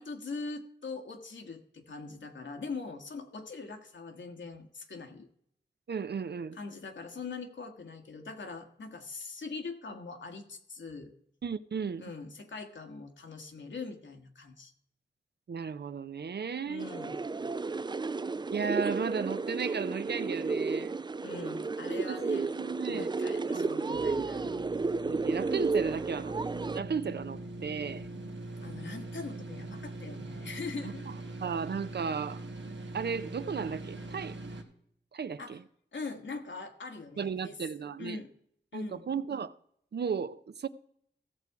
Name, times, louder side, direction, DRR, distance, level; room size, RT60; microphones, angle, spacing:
voice 1, 0.0-5.3 6.5-11.1 12.0-14.7 16.6-17.2 21.2-24.6 28.6-31.1 35.4-35.6 35.9-37.6 38.0-38.3 38.7-39.1, left 4 dB, 80° left, 1.4 m, -42 dB
voice 2, 5.9-6.6 11.4-12.0 15.5-16.9 18.5-21.0 22.1-23.1 23.5-24.1 25.0-26.3 26.7-28.1 31.4-34.4 35.1-35.6 37.2-38.2 38.7-39.5 39.9-40.7, right 6 dB, 65° right, 0.6 m, -35 dB
sound 1, 16.8-26.8, right 4 dB, 25° right, 0.3 m, -32 dB
sound 2, 23.9-34.6, right 2 dB, 90° right, 1.4 m, -42 dB
15.5 x 6.8 x 4.7 m
cardioid pair, 55°, 19 cm